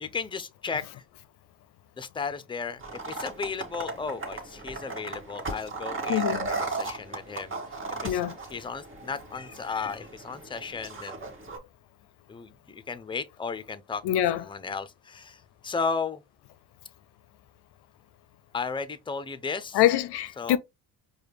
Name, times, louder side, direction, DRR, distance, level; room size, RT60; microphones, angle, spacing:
voice 1, 0.0-1.0 2.0-2.8 3.1-7.6 8.0-8.3 8.5-11.3 12.3-14.0 14.3-16.2 18.5-19.8 20.4-20.6, left 5 dB, 10° left, 0.5 m, -34 dB
sound 1, 2.8-11.6, right 3 dB, 30° right, 1.5 m, -36 dB
voice 2, 6.1-6.5 8.0-8.3 14.0-14.4 19.7-20.6, left 12 dB, 65° left, 0.5 m, -24 dB
4.8 x 2.3 x 3.0 m
supercardioid pair, 70°, 42 cm